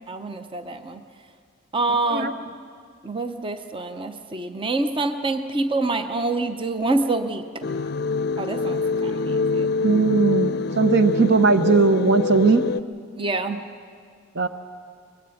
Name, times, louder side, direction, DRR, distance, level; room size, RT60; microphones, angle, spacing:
voice 1, 0.1-1.0 1.7-2.5 3.0-7.7 8.4-9.7 13.2-13.7, right 2 dB, 25° right, 8 dB, 0.8 m, -26 dB
voice 2, 1.9-2.3 9.8-12.6 14.4-14.5, right 4 dB, 60° right, 9 dB, 0.8 m, -19 dB
sound 1, 7.6-12.8, left 4 dB, 55° left, 0.5 m, -25 dB
23.5 x 21.0 x 5.7 m, 2.1 s
head